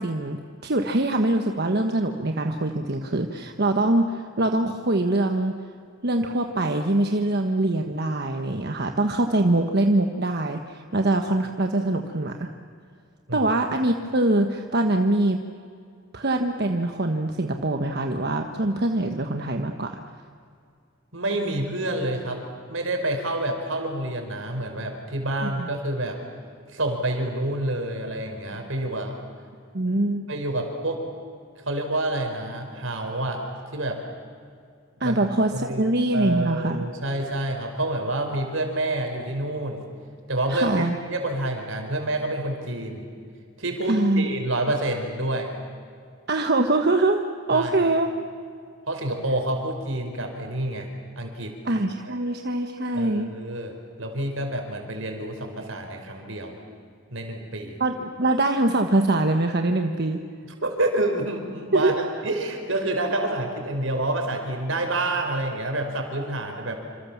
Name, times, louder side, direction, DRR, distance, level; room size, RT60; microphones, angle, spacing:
voice 1, 0.0-5.6 6.0-12.5 13.3-15.4 16.1-20.0 25.4-25.7 29.7-30.2 35.0-36.8 40.5-41.0 43.9-44.2 46.3-47.2 47.5-48.1 51.6-53.3 57.8-60.2 61.7-61.9, right 2 dB, 55° right, 4 dB, 1.3 m, -23 dB
voice 2, 21.1-22.4 22.7-26.2 26.7-29.1 30.3-31.0 31.6-33.4 33.7-34.0 35.0-35.3 35.5-35.8 36.1-39.8 40.3-43.1 43.6-45.5 47.5-47.8 48.9-51.6 52.0-52.2 52.9-56.6 57.1-57.8 60.6-61.9 62.2-66.8, right 1 dB, 75° right, 4 dB, 4.9 m, -28 dB
28.0 x 27.0 x 7.3 m, 2.3 s
head